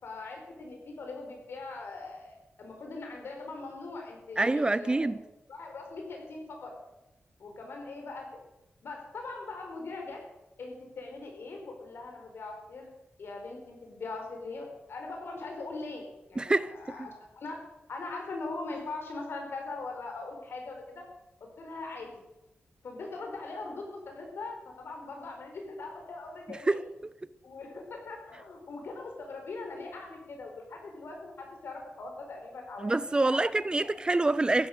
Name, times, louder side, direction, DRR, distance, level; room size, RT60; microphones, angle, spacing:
voice 1, 0.0-5.1 5.5-6.7 7.4-8.3 8.8-10.2 10.6-12.9 13.2-17.1 17.3-17.6 17.9-21.0 21.6-22.1 22.8-26.8 27.4-33.4 33.8-34.0, left 3 dB, 75° left, 5.0 m, -41 dB
voice 2, 4.4-5.2 16.4-16.7 26.7-26.8 32.8-34.7, right 2 dB, 25° right, 0.5 m, -26 dB
15.0 x 12.0 x 6.8 m
wide cardioid pair, 120°, 4 cm